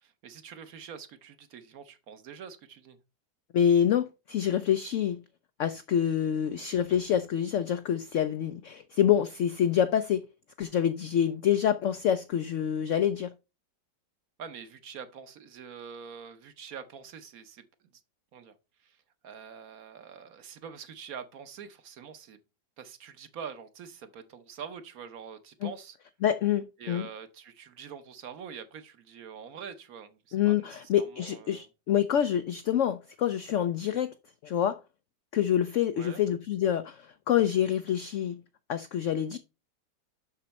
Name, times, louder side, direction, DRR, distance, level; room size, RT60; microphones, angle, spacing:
voice 1, 0.0-3.0 14.4-17.6 18.3-18.5 18.8-22.4 22.8-26.0 26.8-31.7 36.0-36.2, right 7 dB, 60° right, 1.2 m, -45 dB
voice 2, 3.5-5.2 5.6-10.2 10.6-13.3 25.6-25.7 26.2-27.1 30.3-34.1 34.4-34.8 35.3-38.4 38.7-39.4, left 9 dB, 85° left, 0.6 m, -26 dB
6.8 x 6.2 x 4.1 m
omnidirectional pair, 1.9 m